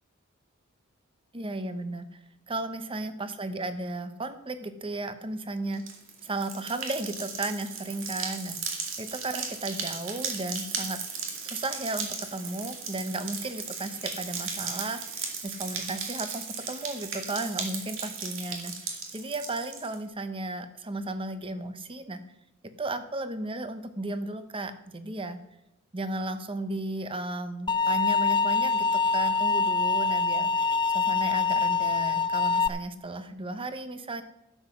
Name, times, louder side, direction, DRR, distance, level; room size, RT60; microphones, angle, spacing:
voice 1, 1.3-2.2 2.5-5.8 6.2-11.0 11.4-22.2 22.8-25.4 25.9-34.2, right 2 dB, 25° right, 10 dB, 0.9 m, -34 dB
sound 1, 5.7-20.0, right 5 dB, 70° right, 2.3 m, -36 dB
sound 2, 27.7-32.7, left 4 dB, 25° left, 0.4 m, -25 dB
12.0 x 7.9 x 6.1 m, 0.89 s
head